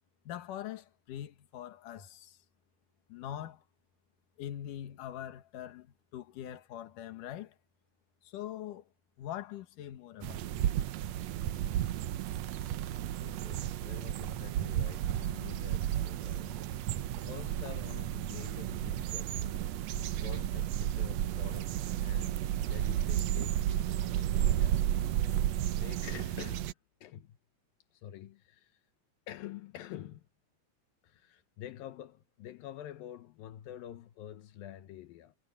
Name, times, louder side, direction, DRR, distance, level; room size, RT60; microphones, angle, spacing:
voice 1, 0.2-2.4 3.1-3.6 4.4-7.6 8.2-8.9 9.2-10.6 19.9-20.1, left 11 dB, 70° left, 3.0 m, -43 dB
sound 1, 10.2-26.7, right 12 dB, 75° right, 1.5 m, -32 dB
voice 2, 13.1-16.7 17.2-19.8 20.1-22.4 22.7-24.8 25.7-27.4 27.9-28.8 29.3-30.3 31.0-35.4, left 11 dB, 85° left, 2.9 m, -48 dB
omnidirectional pair, 4.0 m